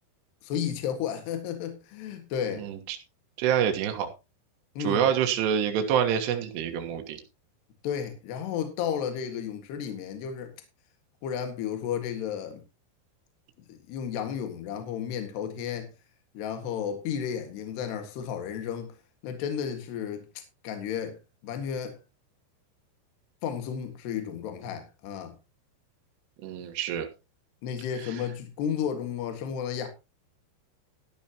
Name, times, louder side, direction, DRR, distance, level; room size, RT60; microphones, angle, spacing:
voice 1, 0.4-2.7 4.8-5.1 7.8-10.5 11.2-12.6 13.7-15.9 16.4-18.9 19.2-20.3 20.6-21.2 21.4-22.0 23.4-25.3 27.6-29.9, left 8 dB, 65° left, 3.8 m, -33 dB
voice 2, 2.6-3.0 3.4-4.1 4.8-7.2 26.4-27.1, right 9 dB, 70° right, 3.3 m, -26 dB
13.0 x 12.0 x 2.9 m
omnidirectional pair, 5.3 m